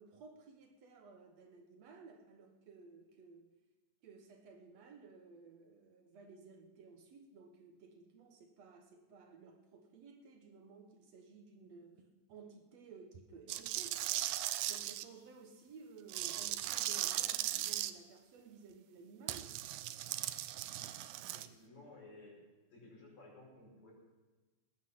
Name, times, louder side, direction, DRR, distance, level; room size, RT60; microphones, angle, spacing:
voice 1, 0.0-3.5 4.0-14.0 14.7-19.6, right 4 dB, 65° right, 4 dB, 2.2 m, -56 dB
sound 1, 13.5-15.0 16.1-17.9 19.3-21.5, right 14 dB, 85° right, 2.1 m, -38 dB
voice 2, 21.3-22.4 22.7-23.9, left 2 dB, 65° left, -4 dB, 6.9 m, -56 dB
19.0 x 9.8 x 5.6 m, 1.2 s
omnidirectional pair, 3.5 m